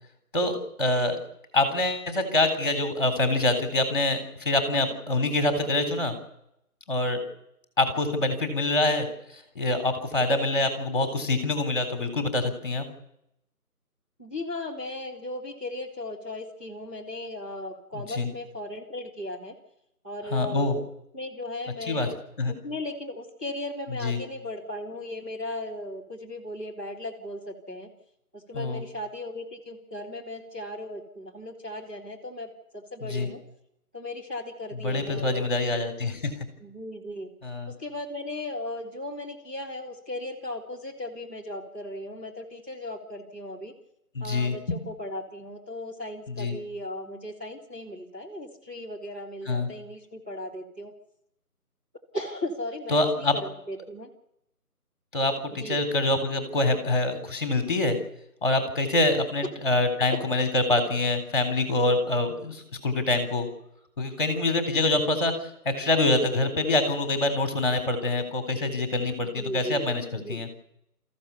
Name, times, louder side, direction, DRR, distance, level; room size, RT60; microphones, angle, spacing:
voice 1, 0.3-1.2 1.5-6.1 6.9-7.2 7.8-9.1 9.6-12.9 17.9-18.3 20.3-20.8 21.9-22.1 22.4-22.5 23.9-24.2 28.5-28.8 33.0-33.3 34.8-36.3 37.4-37.7 44.1-44.8 46.3-46.5 49.5-49.7 52.9-53.3 55.1-58.0 58.4-63.5 64.0-65.4 65.7-70.5, left 2 dB, 30° left, 7 dB, 3.9 m, -25 dB
voice 2, 14.2-19.5 20.0-20.8 21.1-22.1 22.5-27.9 28.3-33.4 33.9-35.4 36.6-37.3 37.7-43.7 44.2-50.9 52.1-54.1 55.5-55.8 69.2-69.9 70.1-70.4, left 1 dB, 5° right, -8 dB, 1.6 m, -37 dB
29.0 x 15.0 x 7.1 m, 0.80 s
figure-of-eight pair, 170°, 47 cm